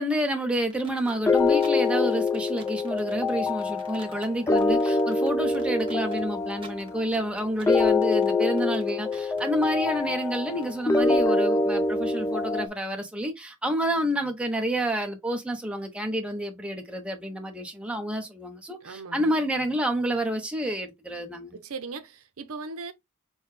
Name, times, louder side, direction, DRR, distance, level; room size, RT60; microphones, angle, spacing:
voice 1, 0.0-21.6, right 1 dB, 5° right, 0.8 m, -29 dB
sound 1, 0.7-10.7, right 3 dB, 25° right, 1.2 m, -49 dB
sound 2, 1.3-12.7, left 3 dB, 15° left, 0.4 m, -25 dB
voice 2, 18.8-19.3 21.5-22.9, right 4 dB, 70° right, 0.7 m, -38 dB
6.2 x 2.2 x 3.2 m
head